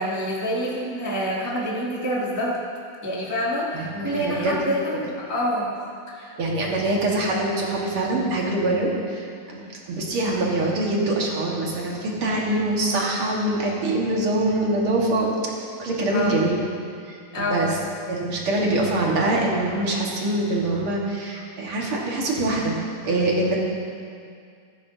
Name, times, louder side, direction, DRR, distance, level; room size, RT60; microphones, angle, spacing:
voice 1, 0.0-2.6 3.0-5.7 6.1-6.4 9.5-9.7 16.1-16.3 17.3-17.7, equal, 15° right, -6 dB, 0.7 m, -27 dB
voice 2, 3.7-4.6 6.4-15.4 15.8-16.6 17.1-17.8 18.1-22.8 23.1-23.6, right 2 dB, 50° right, -3 dB, 2.2 m, -24 dB
14.5 x 14.0 x 2.7 m, 2.3 s
omnidirectional pair, 3.5 m